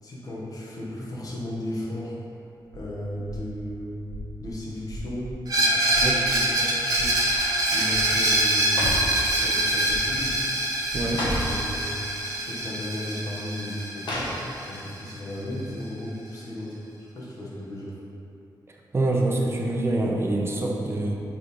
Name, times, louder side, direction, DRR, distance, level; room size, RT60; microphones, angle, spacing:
voice 1, 0.0-2.2 2.7-4.0 4.4-7.2 7.7-10.4 11.4-11.9 12.3-14.3 14.7-16.8 17.1-18.0, left 1 dB, 45° left, -6 dB, 1.4 m, -35 dB
sound 1, 2.7-3.8 4.0-4.6 4.8-5.4 5.8-6.4 6.9-7.6 7.9-8.4 8.8-9.3 9.6-10.3 10.9-11.4, equal, 85° right, 0.7 m, -40 dB
Screech, 5.5-15.1, right 1 dB, 50° right, 1.1 m, -25 dB
sound 2, 6.6-6.8 7.2-7.6 8.4-9.2 10.0-10.3 10.5-10.6 11.0-11.6 12.5-12.6 14.0-14.7 15.1-15.2, left 1 dB, 65° left, 1.3 m, -32 dB
voice 2, 18.7-21.1, right 2 dB, 30° right, -1 dB, 0.7 m, -25 dB
5.2 x 3.4 x 5.5 m, 2.7 s
wide cardioid pair, 120°, 8 cm